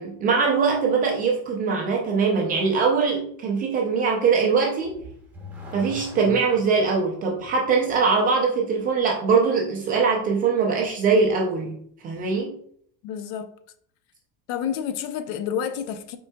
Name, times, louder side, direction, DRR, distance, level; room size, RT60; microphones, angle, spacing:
voice 1, 0.0-5.0 5.7-11.8 12.0-12.6, right 5 dB, 20° right, 0.3 m, -22 dB
Car / Accelerating revving vroom, 4.8-7.0, left 1 dB, 5° right, 0.9 m, -40 dB
voice 2, 13.0-13.5 14.5-16.2, left 8 dB, 55° left, 0.6 m, -29 dB
5.3 x 4.5 x 2.2 m
cardioid pair, 165°, 41 cm